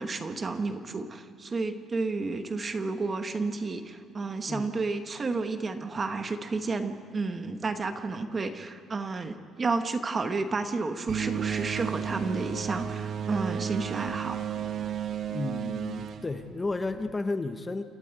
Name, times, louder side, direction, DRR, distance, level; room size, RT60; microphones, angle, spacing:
voice 1, 0.0-14.4, right 3 dB, 25° right, 8 dB, 1.2 m, -31 dB
sound 1, 11.1-17.1, right 9 dB, 50° right, 0.9 m, -33 dB
voice 2, 15.3-17.8, left 3 dB, 20° left, 8 dB, 0.9 m, -32 dB
29.0 x 12.5 x 8.9 m, 2.1 s
cardioid pair, 140°, 0 cm